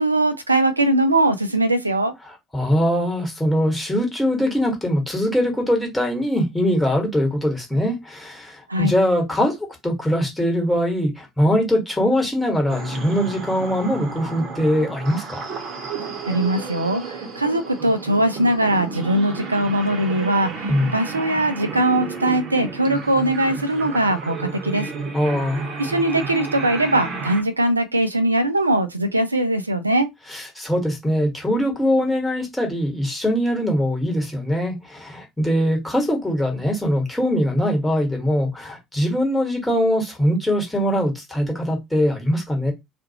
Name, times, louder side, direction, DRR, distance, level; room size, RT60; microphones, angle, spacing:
voice 1, 0.0-2.1 8.7-8.9 16.2-24.9 25.8-30.1, right 1 dB, 85° right, 0.3 m, -21 dB
voice 2, 2.3-9.6 9.8-15.4 20.7-20.9 25.1-25.6 30.3-42.7, equal, 10° left, 1.2 m, -22 dB
sound 1, 12.7-27.4, right 4 dB, 45° right, 0.8 m, -32 dB
2.5 x 2.3 x 2.8 m
figure-of-eight pair, 65°, 0 cm